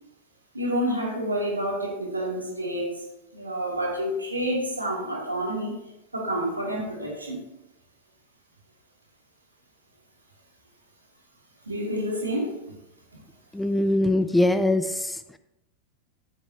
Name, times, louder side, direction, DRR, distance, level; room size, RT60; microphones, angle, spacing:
voice 1, 0.5-2.9 3.3-5.7 6.1-7.4 11.7-12.6, equal, 80° right, -2 dB, 2.5 m, -28 dB
voice 2, 13.5-15.4, left 1 dB, 5° left, 12 dB, 0.4 m, -23 dB
13.0 x 7.9 x 2.8 m, 0.88 s
figure-of-eight pair, 90°, 0 cm